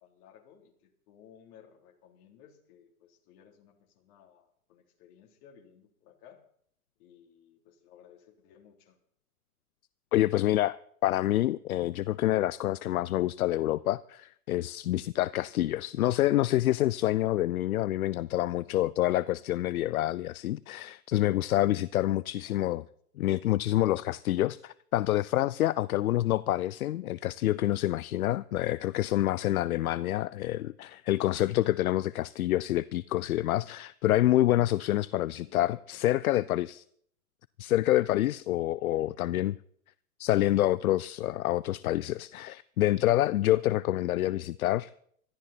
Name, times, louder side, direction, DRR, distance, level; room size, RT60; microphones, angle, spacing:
voice 1, 0.0-6.4 7.0-9.0 18.2-18.7 22.4-22.5 35.4-36.1 38.8-39.2 44.1-44.5, left 8 dB, 40° left, 3.3 m, -58 dB
voice 2, 10.1-22.8 23.2-36.8 37.6-39.5 40.2-44.9, left 14 dB, 70° left, 0.6 m, -27 dB
21.5 x 13.5 x 4.2 m
hypercardioid pair, 130°, 45 cm